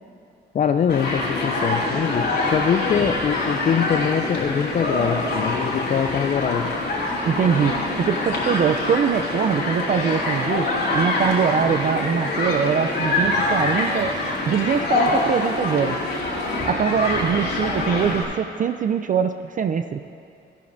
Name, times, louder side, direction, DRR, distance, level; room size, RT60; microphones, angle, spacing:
voice 1, 0.5-6.7, left 8 dB, 40° left, 7 dB, 0.4 m, -23 dB
Human group actions, 0.9-18.2, left 2 dB, 55° left, 2.6 m, -25 dB
voice 2, 7.3-14.1 14.5-16.0 16.6-20.0, right 7 dB, 40° right, 8 dB, 0.4 m, -23 dB
14.0 x 11.5 x 2.6 m, 2.5 s
cardioid pair, 90°, 20 cm